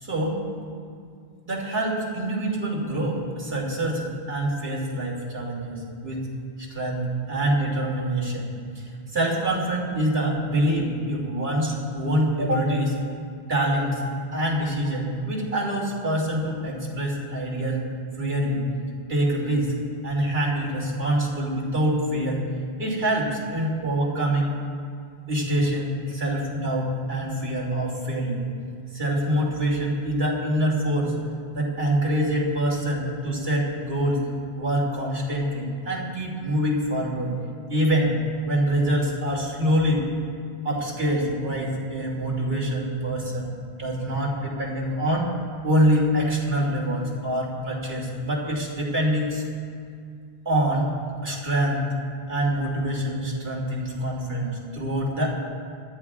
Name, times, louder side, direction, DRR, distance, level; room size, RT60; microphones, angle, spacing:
voice 1, 0.0-0.4 1.4-6.3 6.7-8.5 9.1-13.0 13.5-14.0 14.3-17.8 18.2-18.7 19.1-19.8 20.0-22.4 22.8-24.6 25.3-28.4 28.9-31.1 31.5-34.2 34.5-37.3 37.7-38.2 38.4-40.1 40.6-43.5 43.8-45.3 45.6-49.4 50.4-50.9 51.2-52.0 52.3-55.3, right 1 dB, 65° right, -3 dB, 2.9 m, -25 dB
26.0 x 13.5 x 2.4 m, 2.2 s
omnidirectional pair, 1.1 m